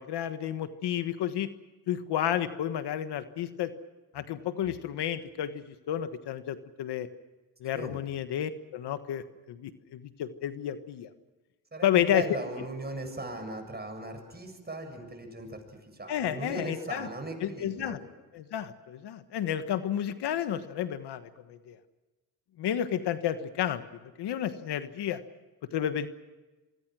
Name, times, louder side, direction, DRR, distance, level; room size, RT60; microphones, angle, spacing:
voice 1, 0.0-1.5 1.9-3.7 4.1-7.1 7.6-11.1 11.8-12.2 16.1-17.1 17.4-18.0 18.3-21.8 22.6-23.8 24.2-25.2 25.7-26.1, left 10 dB, 85° left, 10 dB, 1.4 m, -31 dB
voice 2, 11.7-15.6 15.9-18.0, right 2 dB, 25° right, 5 dB, 7.7 m, -38 dB
26.5 x 24.0 x 6.2 m, 1.2 s
cardioid pair, 80°, 39 cm